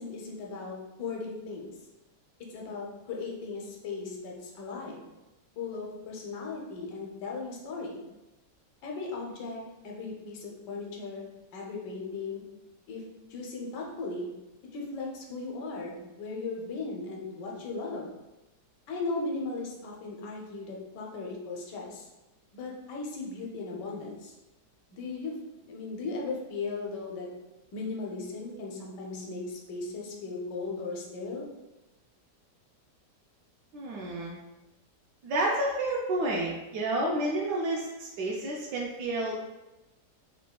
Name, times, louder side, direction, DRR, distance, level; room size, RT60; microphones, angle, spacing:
voice 1, 0.0-1.7 2.5-5.0 5.6-8.0 8.8-12.4 12.9-13.0 13.3-14.3 14.7-18.1 18.9-22.0 22.5-24.3 24.9-25.3 25.6-27.3 27.7-31.5, left 3 dB, 90° left, -1 dB, 1.4 m, -37 dB
voice 2, 33.7-34.3 35.2-39.4, right 1 dB, 80° right, -4 dB, 1.2 m, -30 dB
4.1 x 3.3 x 2.2 m, 1.0 s
omnidirectional pair, 1.8 m